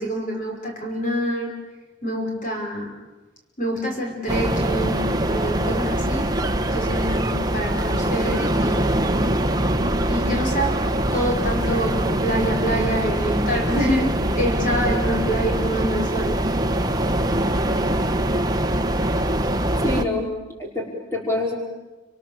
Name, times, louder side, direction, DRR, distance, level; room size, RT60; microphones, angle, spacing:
voice 1, 0.0-1.5 2.0-2.9 3.6-6.3 6.7-9.3 10.1-10.8 11.1-16.4, equal, 45° left, 1 dB, 5.7 m, -26 dB
sound 1, 4.3-20.0, right 1 dB, 20° right, 1.4 m, -23 dB
voice 2, 19.8-20.3 20.6-21.6, left 2 dB, 15° left, -2 dB, 5.5 m, -25 dB
30.0 x 26.0 x 7.3 m, 1.2 s
head